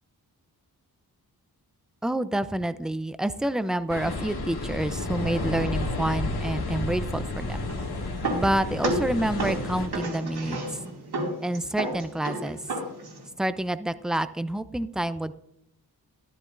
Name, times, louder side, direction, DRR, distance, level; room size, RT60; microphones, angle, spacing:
voice 1, 2.0-7.6 8.3-10.8 11.4-12.6 13.4-15.3, right 1 dB, ahead, 12 dB, 0.5 m, -28 dB
sound 1, 3.9-9.9, left 2 dB, 80° left, 2.0 m, -31 dB
sound 2, 7.5-13.3, right 2 dB, 85° right, 2.6 m, -32 dB
13.0 x 13.0 x 2.6 m, 0.74 s
cardioid pair, 70°, 38 cm